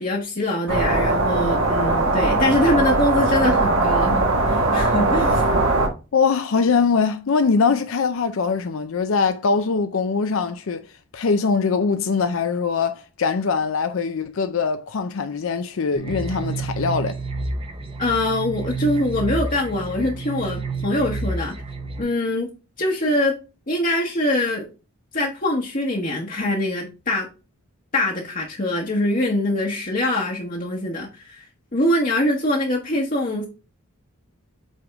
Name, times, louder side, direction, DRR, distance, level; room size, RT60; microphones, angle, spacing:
voice 1, 0.0-4.2 4.5-5.5 18.0-21.6 22.0-22.5 22.8-23.4 23.7-24.7 25.1-27.3 27.9-31.5 31.7-33.5, left 1 dB, 35° left, 1.0 m, -23 dB
sound 1, 0.7-5.9, right 2 dB, 70° right, 1.4 m, -20 dB
voice 2, 6.1-10.8 11.1-17.2, left 5 dB, 60° left, 0.4 m, -22 dB
sound 2, 16.0-22.0, right 3 dB, 25° right, 0.6 m, -29 dB
8.2 x 3.5 x 3.5 m
head